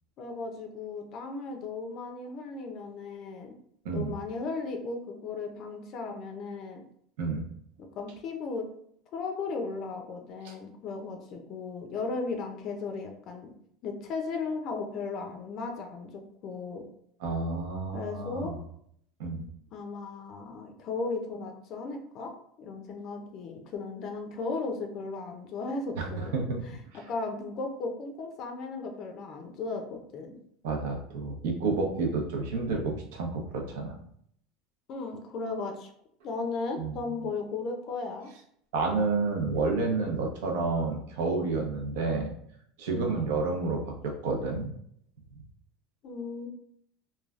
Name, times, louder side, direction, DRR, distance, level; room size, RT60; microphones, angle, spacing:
voice 1, 0.2-3.5 3.9-6.8 8.0-8.7 9.1-13.5 13.8-16.9 17.9-18.5 19.7-22.3 22.6-26.3 26.6-30.3 34.9-35.9 36.2-38.3 42.9-43.3 46.0-46.5, left 4 dB, 45° left, 4 dB, 0.4 m, -36 dB
voice 2, 17.2-18.5 19.2-19.5 26.0-26.6 30.6-33.9 36.8-36.9 38.7-42.3 42.8-44.7, right 3 dB, 85° right, 2 dB, 0.7 m, -30 dB
3.1 x 2.2 x 2.3 m, 0.67 s
supercardioid pair, 145°, 0 cm